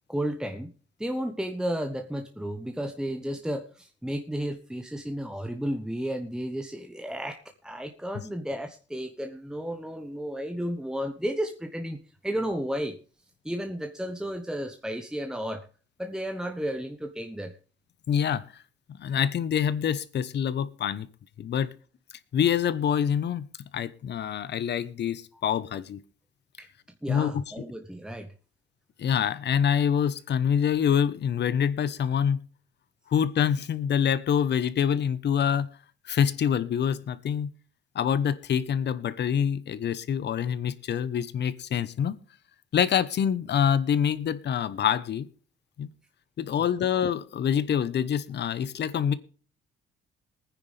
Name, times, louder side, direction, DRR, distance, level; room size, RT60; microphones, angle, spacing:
voice 1, 0.1-0.7 1.0-13.0 13.4-15.7 16.0-17.5 25.3-25.4 26.6-26.7 27.0-28.3, equal, 5° right, 5 dB, 1.2 m, -33 dB
voice 2, 18.1-18.5 18.9-21.1 21.4-21.7 22.3-23.4 23.7-26.0 27.1-27.4 29.0-32.4 33.1-35.7 36.0-37.5 37.9-42.2 42.7-45.3 45.8-45.9 46.4-49.1, left 8 dB, 60° left, 16 dB, 1.1 m, -26 dB
21.5 x 9.7 x 3.4 m, 0.40 s
cardioid pair, 90°, 20 cm